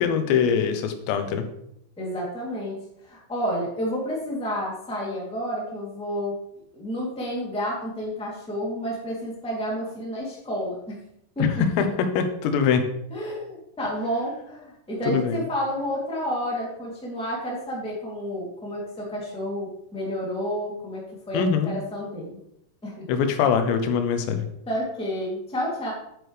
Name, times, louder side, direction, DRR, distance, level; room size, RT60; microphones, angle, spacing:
voice 1, 0.0-1.4 11.4-12.8 15.1-15.4 21.3-21.7 23.1-24.5, left 6 dB, 90° left, 7 dB, 3.1 m, -23 dB
voice 2, 2.0-2.8 3.0-6.3 6.7-11.0 11.3-11.5 13.1-22.4 22.8-23.1 24.6-25.9, equal, ahead, -4 dB, 1.6 m, -30 dB
9.8 x 7.9 x 3.3 m, 0.77 s
omnidirectional pair, 5.0 m